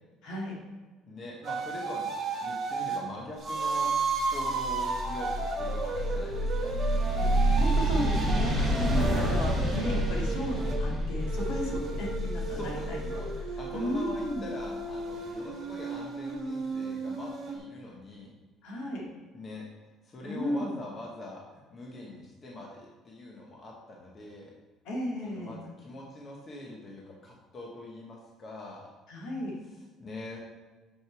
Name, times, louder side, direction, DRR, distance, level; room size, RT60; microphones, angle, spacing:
voice 1, 0.2-0.5 7.2-7.3 7.6-13.2 13.7-14.5 18.6-19.1 20.3-20.7 24.8-25.6 29.1-29.5, left 1 dB, 65° left, -2 dB, 2.3 m, -34 dB
voice 2, 1.0-2.1 2.4-3.9 4.3-6.8 8.6-9.3 12.5-13.3 13.6-18.3 18.7-18.8 19.3-19.6 20.0-24.5 25.2-28.9 29.7-30.4, left 1 dB, 25° left, -2 dB, 1.0 m, -43 dB
sound 1, 1.4-3.0 3.4-10.8 11.2-17.6, right 3 dB, 25° right, 1.5 m, -34 dB
sound 2, 4.1-14.9, right 1 dB, 10° right, 1.4 m, -29 dB
6.5 x 6.3 x 4.5 m, 1.3 s
cardioid pair, 170°, 0 cm